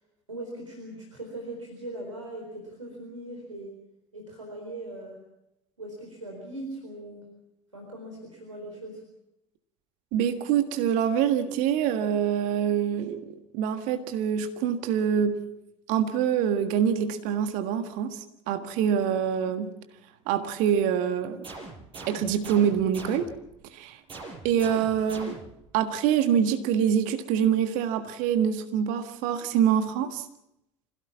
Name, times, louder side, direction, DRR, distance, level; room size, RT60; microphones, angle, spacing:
voice 1, 0.3-3.7 4.1-5.2 5.8-7.3 7.7-9.0, right 1 dB, 85° right, 0 dB, 4.2 m, -40 dB
voice 2, 10.1-15.4 15.9-19.7 20.3-21.5 22.1-23.3 23.7-24.0 24.4-25.4 25.7-30.2, right 8 dB, 55° right, 8 dB, 1.6 m, -25 dB
sound 1, 21.4-23.5 24.1-25.7, right 3 dB, 30° right, 6.6 m, -42 dB
25.5 x 17.0 x 7.3 m, 0.85 s
figure-of-eight pair, 65°, 16 cm